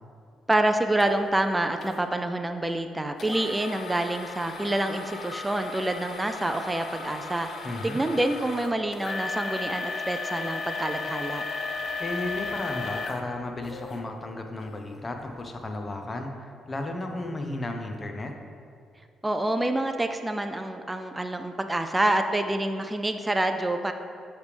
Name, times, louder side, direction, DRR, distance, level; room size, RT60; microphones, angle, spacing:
voice 1, 0.5-7.5 7.8-11.4 19.2-23.9, right 1 dB, 15° right, 6 dB, 0.4 m, -27 dB
sound 1, 1.0-1.1 1.8-2.0 3.2-14.0 14.6-14.7 15.3-15.4, left 4 dB, 60° left, 0.6 m, -35 dB
voice 2, 7.6-8.0 12.0-18.3, left 2 dB, 25° left, 4 dB, 0.8 m, -34 dB
7.9 x 3.4 x 5.1 m, 2.3 s
cardioid pair, 90°, 0 cm